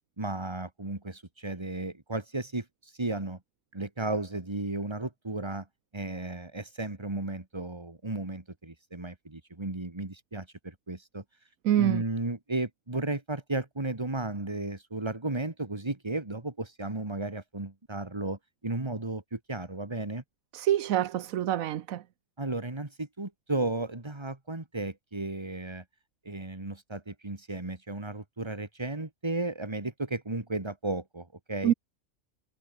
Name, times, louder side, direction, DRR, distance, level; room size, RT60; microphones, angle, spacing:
voice 1, 0.2-2.7 3.0-3.4 3.7-5.7 5.9-11.2 11.8-20.2 22.4-25.8 26.3-31.7, right 2 dB, 20° right, 2.2 m, -34 dB
voice 2, 11.6-12.0 20.5-22.0 31.6-31.7, right 11 dB, 75° right, 1.2 m, -26 dB
omnidirectional pair, 1.5 m